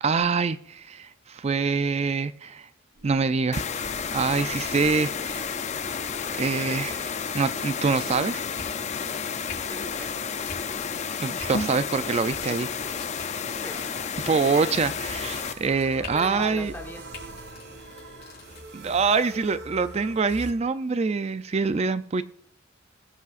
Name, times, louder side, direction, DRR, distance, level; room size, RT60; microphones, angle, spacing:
voice 1, 0.0-2.7 3.0-5.5 6.3-8.4 11.2-12.7 14.2-16.7 18.7-22.2, right 4 dB, 30° right, 13 dB, 0.4 m, -25 dB
sound 1, 2.9-20.5, right 2 dB, 55° right, 1.5 m, -46 dB
sound 2, 3.5-15.5, left 6 dB, 35° left, 0.5 m, -31 dB
sound 3, 3.7-18.6, left 1 dB, 50° left, 4.3 m, -43 dB
voice 2, 9.6-10.1 13.6-13.7 16.1-17.0, left 1 dB, 10° left, 2 dB, 1.2 m, -38 dB
20.5 x 8.3 x 2.5 m, 0.65 s
head